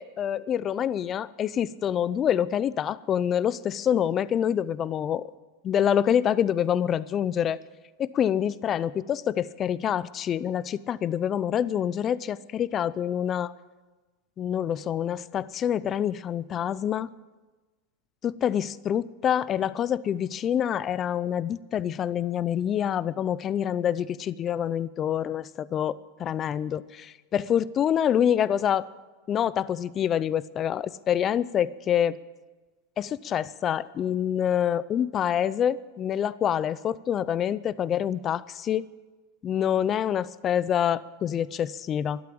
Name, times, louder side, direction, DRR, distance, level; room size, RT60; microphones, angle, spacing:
voice 1, 0.0-5.3 5.6-7.6 8.0-13.5 14.4-17.1 18.2-28.8 29.3-32.2 33.0-38.9 39.4-42.2, left 9 dB, 30° left, 19 dB, 0.5 m, -26 dB
12.5 x 12.0 x 8.7 m, 1.2 s
supercardioid pair, 130°, 0 cm